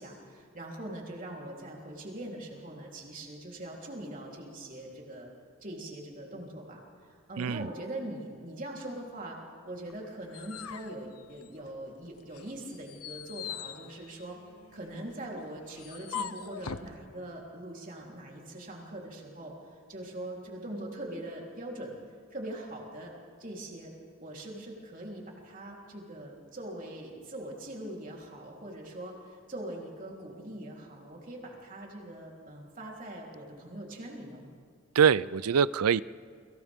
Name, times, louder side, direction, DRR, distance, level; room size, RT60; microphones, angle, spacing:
voice 1, 0.0-5.3 5.6-6.8 7.3-9.4 9.7-14.4 14.7-22.0 22.3-23.1 23.4-23.9 24.2-34.5, right 1 dB, 35° right, 3.6 m, -42 dB
voice 2, 7.4-7.7 34.9-36.0, right 7 dB, 85° right, 0.5 m, -24 dB
sound 1, 9.9-11.9 12.3-16.9, left 7 dB, 85° left, 0.8 m, -42 dB
30.0 x 25.0 x 3.6 m
head